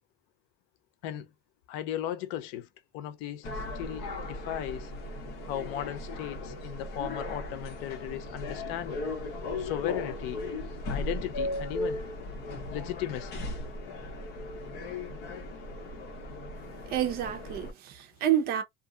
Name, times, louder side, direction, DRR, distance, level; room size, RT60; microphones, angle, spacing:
voice 1, 1.7-2.7 2.9-3.5 3.7-4.9 5.4-9.0 9.6-10.4 10.9-12.0 12.7-13.4, left 11 dB, 90° left, 0.7 m, -36 dB
sound 1, 3.4-17.7, left 2 dB, 55° left, 1.0 m, -37 dB
voice 2, 16.9-18.6, right 10 dB, 50° right, 0.7 m, -28 dB
2.7 x 2.5 x 2.3 m
cardioid pair, 175°, 20 cm